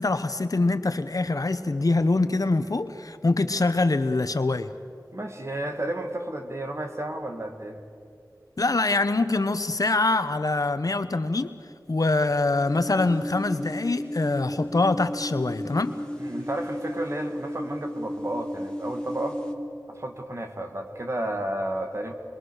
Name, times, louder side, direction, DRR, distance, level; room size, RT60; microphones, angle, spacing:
voice 1, 0.0-4.7 8.6-11.5 11.9-16.0, left 2 dB, 60° left, 11 dB, 1.0 m, -24 dB
voice 2, 5.1-7.8 16.2-19.4 19.9-22.1, right 1 dB, 45° right, 4 dB, 2.4 m, -32 dB
sound 1, 12.6-19.5, equal, 15° left, 2.1 m, -34 dB
26.0 x 22.5 x 6.5 m, 2.4 s
wide cardioid pair, 55°, 7 cm